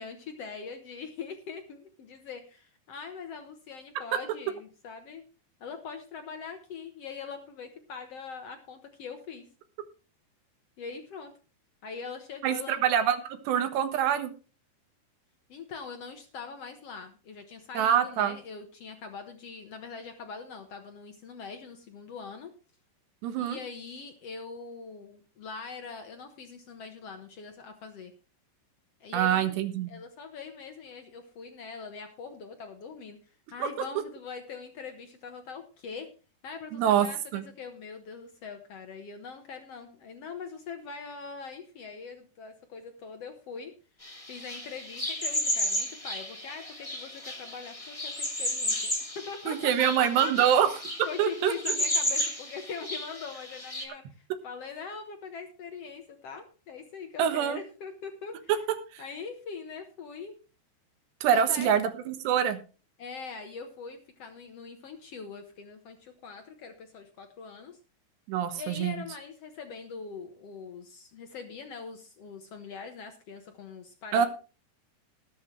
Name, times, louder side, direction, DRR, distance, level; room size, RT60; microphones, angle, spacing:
voice 1, 0.0-5.2 5.6-9.5 10.8-11.3 11.8-12.8 15.5-22.5 23.3-28.1 29.0-29.6 29.9-36.1 36.4-43.7 44.3-58.5 59.0-60.4 61.3-61.8 63.0-67.8 68.6-74.2, left 5 dB, 85° left, 6 dB, 1.3 m, -42 dB
voice 2, 12.4-14.3 17.8-18.4 23.2-23.6 29.1-29.9 33.6-33.7 36.7-37.1 37.3-37.5 49.5-50.7 51.2-51.8 57.2-57.6 58.9-59.0 61.2-62.6 68.3-69.0 74.1-74.3, right 9 dB, 85° right, 9 dB, 3.5 m, -25 dB
sound 1, 44.0-53.8, left 1 dB, 10° left, 2.3 m, -33 dB
19.5 x 8.3 x 3.2 m, 0.34 s
omnidirectional pair, 4.8 m